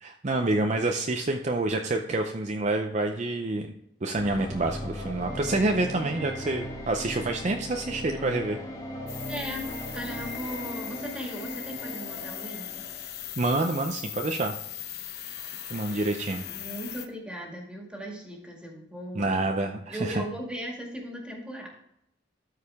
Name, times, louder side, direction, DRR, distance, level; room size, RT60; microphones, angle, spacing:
voice 1, 0.0-3.7 4.0-8.6 13.4-14.5 15.7-16.4 19.2-20.2, right 2 dB, 35° right, 4 dB, 0.6 m, -27 dB
sound 1, 4.2-13.2, equal, 15° left, 1.3 m, -38 dB
sound 2, 9.1-17.1, left 11 dB, 55° left, 0.9 m, -39 dB
voice 2, 9.3-12.9 15.8-16.1 16.5-19.4 19.9-21.7, equal, 5° right, -1 dB, 2.0 m, -38 dB
13.0 x 4.9 x 3.5 m, 0.79 s
head